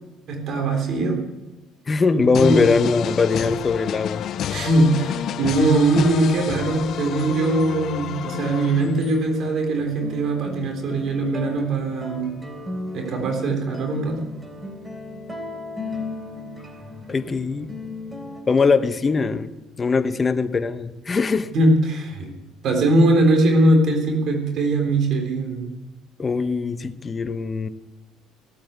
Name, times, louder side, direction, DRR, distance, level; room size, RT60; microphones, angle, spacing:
voice 1, 0.3-1.2 2.1-2.7 4.5-12.4 12.9-14.2 21.5-22.3 22.6-25.7, right 2 dB, 55° right, 3 dB, 3.6 m, -21 dB
voice 2, 1.9-4.2 17.1-17.7 18.5-19.5 19.8-21.5 26.2-27.7, left 4 dB, 30° left, 11 dB, 1.0 m, -21 dB
sound 1, 2.3-9.3, left 10 dB, 55° left, 0.5 m, -30 dB
sound 2, 8.8-18.4, left 2 dB, 15° right, 3.3 m, -36 dB
17.0 x 8.6 x 8.1 m, 1.1 s
cardioid pair, 100°, 0 cm